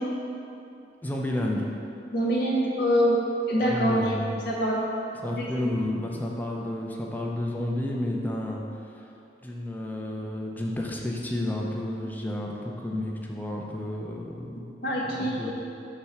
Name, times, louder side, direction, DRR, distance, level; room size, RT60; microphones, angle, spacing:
voice 1, 1.0-1.7 3.6-4.4 5.1-8.6 8.9-9.0 9.4-14.8 15.0-15.5, left 1 dB, 10° left, -1 dB, 0.5 m, -31 dB
voice 2, 2.1-3.2 3.5-3.9 4.5-4.9 5.6-5.7 14.8-15.5, equal, 55° left, -5 dB, 0.7 m, -24 dB
5.9 x 3.4 x 5.5 m, 2.7 s
head